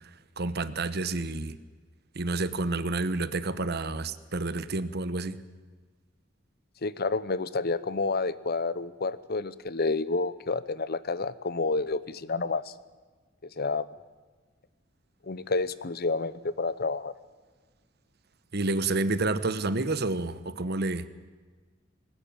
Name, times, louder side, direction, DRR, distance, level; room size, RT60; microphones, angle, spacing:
voice 1, 0.4-1.6 2.1-5.4 18.5-21.1, right 2 dB, 55° right, 14 dB, 1.1 m, -29 dB
voice 2, 6.8-12.6 13.6-13.9 15.3-17.1, left 3 dB, 55° left, 17 dB, 0.9 m, -29 dB
20.5 x 20.0 x 9.0 m, 1.4 s
head